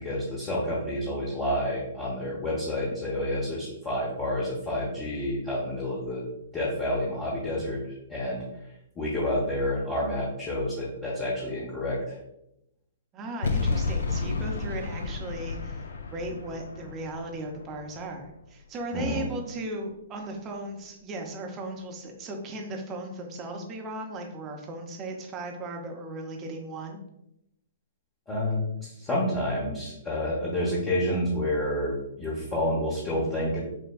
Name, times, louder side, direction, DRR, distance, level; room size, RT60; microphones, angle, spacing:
voice 1, 0.0-6.2 6.5-12.2 18.9-19.2 28.3-33.6, left 1 dB, 20° left, -6 dB, 1.0 m, -29 dB
voice 2, 13.1-15.8 16.1-27.0, right 2 dB, 25° right, 2 dB, 0.7 m, -37 dB
sound 1, 13.4-18.6, left 4 dB, 70° left, 0.4 m, -32 dB
6.1 x 2.2 x 2.4 m, 0.83 s
figure-of-eight pair, 115°, 0 cm